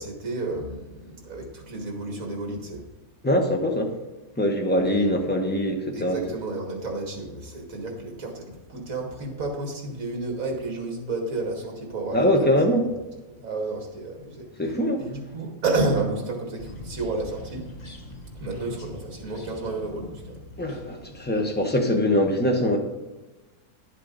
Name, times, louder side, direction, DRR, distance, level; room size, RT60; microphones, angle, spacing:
voice 1, 0.0-2.8 4.8-5.1 5.9-12.5 13.4-17.7 18.4-20.4, right 2 dB, 65° right, 1 dB, 2.2 m, -31 dB
voice 2, 3.2-3.9 4.4-6.2 12.1-12.9 14.6-15.0 20.6-22.8, left 1 dB, 10° left, 2 dB, 0.9 m, -23 dB
sound 1, 16.6-21.6, left 1 dB, 30° left, 1.0 m, -43 dB
10.5 x 7.6 x 4.0 m, 1.1 s
omnidirectional pair, 1.6 m